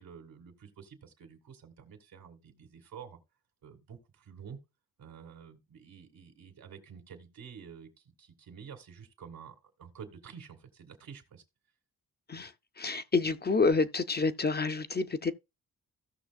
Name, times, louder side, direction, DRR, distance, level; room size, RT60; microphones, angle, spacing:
voice 1, 0.0-3.2 3.6-4.6 5.0-7.9 8.2-11.4, right 7 dB, 90° right, 2.1 m, -49 dB
voice 2, 12.3-15.3, left 4 dB, 30° left, 0.6 m, -28 dB
16.0 x 6.1 x 2.3 m
cardioid pair, 100°, 34 cm